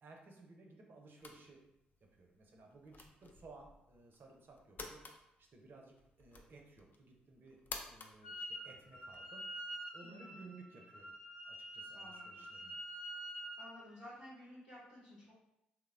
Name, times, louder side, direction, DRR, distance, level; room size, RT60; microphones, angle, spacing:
voice 1, 0.0-1.6 2.1-5.0 5.4-7.6 7.8-9.4 9.9-11.1 11.5-12.7, right 3 dB, 50° right, 1 dB, 0.5 m, -58 dB
sound 1, 1.2-9.3, left 3 dB, 40° left, 0.4 m, -53 dB
Wind instrument woodwind instrument, 8.2-8.6 8.9-13.7, equal, 60° left, 0.9 m, -47 dB
voice 2, 10.0-10.4 11.9-12.5 13.6-15.4, left 1 dB, 90° left, -11 dB, 1.4 m, -54 dB
3.0 x 2.0 x 2.4 m, 0.86 s
hypercardioid pair, 40°, 5 cm